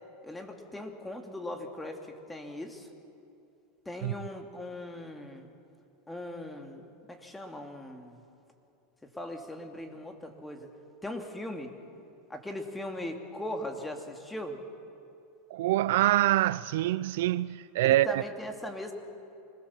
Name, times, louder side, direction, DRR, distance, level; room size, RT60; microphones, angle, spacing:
voice 1, 0.2-2.9 3.9-5.5 6.1-8.2 9.0-10.7 11.0-11.7 12.3-14.6 17.8-18.9, left 1 dB, 10° left, 2.6 m, -39 dB
voice 2, 15.5-18.2, right 15 dB, 75° right, 0.5 m, -25 dB
25.5 x 21.0 x 7.4 m
supercardioid pair, 120°, 0 cm